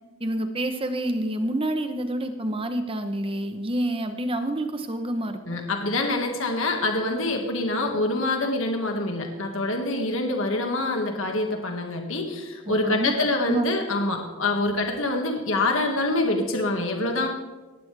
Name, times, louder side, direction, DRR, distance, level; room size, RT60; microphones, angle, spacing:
voice 1, 0.2-5.6 12.7-13.2 13.5-13.6, right 1 dB, 25° right, 7 dB, 0.9 m, -28 dB
voice 2, 5.5-17.3, left 2 dB, 60° left, 3 dB, 1.9 m, -25 dB
19.0 x 15.0 x 3.4 m, 1.3 s
head